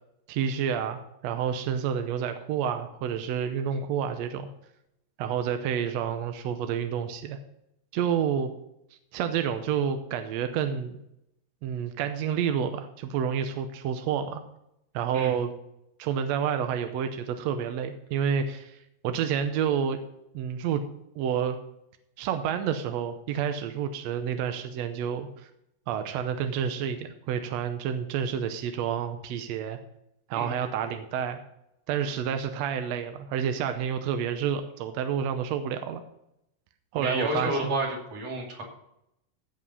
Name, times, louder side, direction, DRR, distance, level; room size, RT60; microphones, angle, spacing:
voice 1, 0.3-4.5 5.2-7.4 7.9-8.5 9.1-11.0 11.6-14.4 14.9-15.5 16.0-18.8 19.0-20.0 20.3-20.8 21.2-21.6 22.2-25.5 25.9-29.8 30.3-31.4 31.9-36.0 36.9-37.7, right 8 dB, 75° right, 8 dB, 1.6 m, -29 dB
voice 2, 30.3-30.6 37.0-38.6, right 1 dB, 50° right, -1 dB, 3.6 m, -30 dB
15.5 x 5.3 x 5.5 m, 0.81 s
omnidirectional pair, 3.9 m